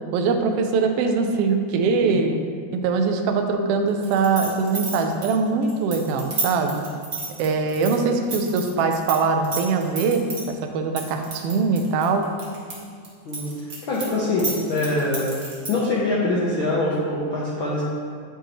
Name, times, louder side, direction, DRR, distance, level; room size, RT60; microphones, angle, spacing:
voice 1, 0.1-2.3 2.7-6.8 7.4-12.3, right 4 dB, 85° right, 5 dB, 1.3 m, -22 dB
sound 1, 4.0-9.2 9.4-10.4 11.0-12.7 13.0-15.8, right 4 dB, 45° right, 1.0 m, -30 dB
voice 2, 13.9-15.3 15.7-17.8, left 2 dB, 70° left, -7 dB, 1.2 m, -24 dB
9.1 x 4.6 x 3.0 m, 2.1 s
omnidirectional pair, 3.3 m